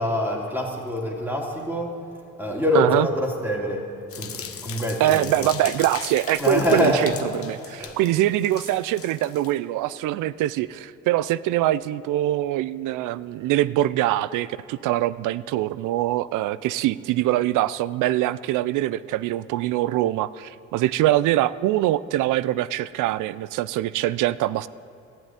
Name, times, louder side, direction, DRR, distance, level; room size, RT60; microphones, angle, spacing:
voice 1, 0.0-2.0 2.4-3.9 4.2-5.5 6.4-7.2 7.8-8.0, left 1 dB, 5° right, -1 dB, 2.9 m, -25 dB
voice 2, 2.7-3.1 5.0-24.7, right 14 dB, 90° right, 17 dB, 0.5 m, -23 dB
sound 1, 4.1-9.5, left 7 dB, 50° left, 1.1 m, -38 dB
12.0 x 10.5 x 9.3 m, 2.6 s
cardioid pair, 90°, 30 cm